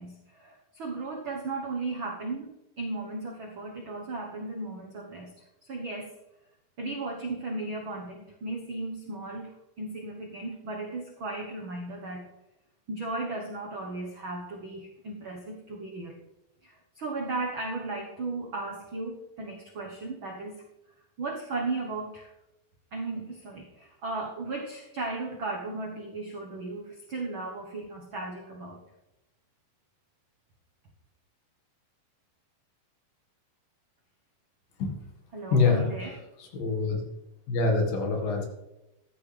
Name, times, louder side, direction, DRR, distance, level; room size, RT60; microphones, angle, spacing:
voice 1, 0.0-5.3 5.6-6.2 6.8-12.3 12.9-16.2 16.6-20.6 21.2-22.3 22.9-28.8 35.3-36.2, right 3 dB, 80° right, 0 dB, 1.1 m, -36 dB
voice 2, 35.5-36.1 36.4-37.1 37.5-38.5, left 4 dB, 70° left, 1 dB, 3.5 m, -25 dB
14.5 x 11.0 x 3.4 m, 0.92 s
omnidirectional pair, 4.4 m